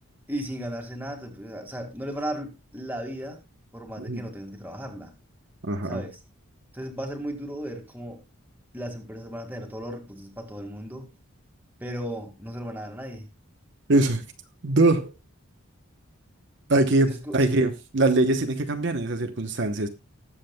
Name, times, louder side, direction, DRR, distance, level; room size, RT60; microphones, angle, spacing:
voice 1, 0.3-3.4 3.7-5.1 5.8-6.2 6.7-8.2 8.7-11.1 11.8-13.3 17.1-17.6, right 1 dB, 10° right, 1.9 m, -35 dB
voice 2, 5.6-6.0 13.9-14.2 14.6-15.1 16.7-19.9, right 2 dB, 55° right, 0.9 m, -22 dB
19.5 x 7.4 x 2.2 m
head